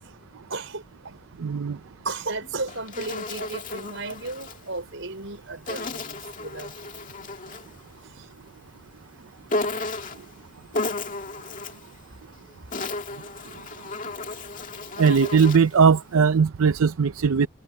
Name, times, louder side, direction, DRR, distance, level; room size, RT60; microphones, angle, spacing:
voice 1, 0.5-1.2 2.0-6.7 7.4-7.5 8.0-8.4 9.6-10.1 11.2-11.3 11.7-12.8, right 3 dB, 65° right, 5.5 m, -36 dB
voice 2, 1.4-1.8 15.0-17.5, right 6 dB, 90° right, 0.5 m, -19 dB
Insect, 2.4-4.6 5.7-7.7 9.5-10.3 10.7-11.9 12.5-15.8, left 2 dB, 40° left, 2.0 m, -33 dB
head